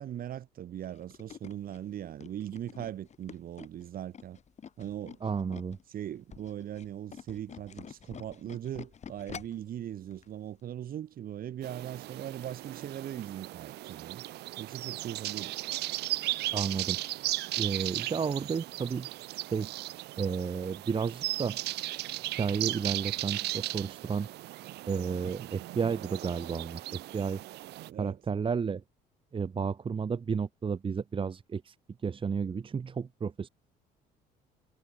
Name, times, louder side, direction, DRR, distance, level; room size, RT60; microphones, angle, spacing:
voice 1, 0.0-4.4 4.8-5.2 5.9-14.2 14.6-15.6 25.4-25.5 27.9-28.2, right 11 dB, 60° right, 7.7 m, -40 dB
Tools, 0.8-5.8 6.2-9.7 10.1-10.3 10.6-10.7, left 7 dB, 40° left, 5.3 m, -47 dB
voice 2, 5.2-5.8 16.5-17.0 17.6-19.1 19.5-19.7 20.2-21.6 22.4-24.3 24.9-27.4 28.0-28.8 29.3-31.8 32.0-33.5, right 6 dB, 30° right, 1.8 m, -32 dB
sound 1, 11.6-27.9, right 17 dB, 80° right, 1.3 m, -36 dB
cardioid pair, 110°, 17 cm